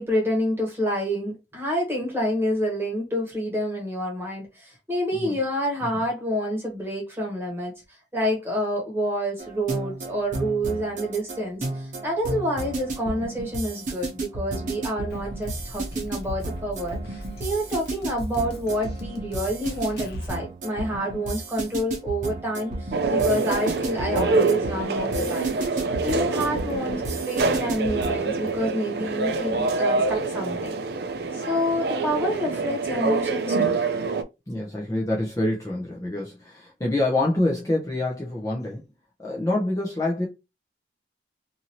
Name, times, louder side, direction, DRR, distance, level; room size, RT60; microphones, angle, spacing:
voice 1, 0.0-7.7 8.1-25.5 26.0-27.0 27.3-30.8 31.3-33.8, equal, 15° right, 1.2 m, -28 dB
sound 1, 9.4-28.3, right 2 dB, 45° right, 1.0 m, -33 dB
Drum kit, 15.1-20.3, equal, 65° left, 0.7 m, -40 dB
sound 2, 22.9-34.2, right 3 dB, 65° right, 0.4 m, -26 dB
voice 2, 34.5-38.8 39.2-40.3, left 2 dB, 20° left, 0.6 m, -26 dB
2.7 x 2.6 x 2.9 m
head